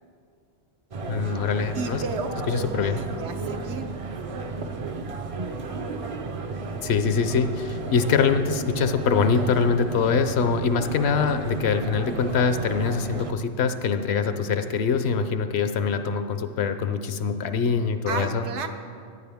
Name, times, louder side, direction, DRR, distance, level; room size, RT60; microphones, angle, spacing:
sound 1, 0.9-13.3, right 3 dB, 45° right, 0.5 m, -33 dB
voice 1, 1.1-2.0 2.5-3.0 6.8-18.4, left 5 dB, 70° left, 9 dB, 0.8 m, -24 dB
voice 2, 1.7-3.9 18.1-18.7, right 4 dB, 80° right, 6 dB, 1.1 m, -33 dB
14.5 x 9.8 x 3.5 m, 2.3 s
omnidirectional pair, 1.2 m